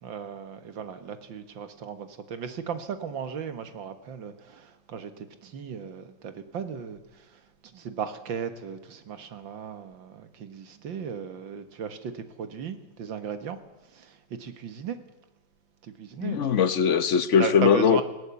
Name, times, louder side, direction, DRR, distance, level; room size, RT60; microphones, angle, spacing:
voice 1, 0.0-7.0 7.7-13.6 13.9-15.0 15.8-16.4 17.4-18.0, right 7 dB, 90° right, 9 dB, 2.2 m, -36 dB
voice 2, 16.2-18.0, left 7 dB, 50° left, 13 dB, 1.0 m, -21 dB
19.5 x 17.5 x 8.4 m, 1.0 s
omnidirectional pair, 2.0 m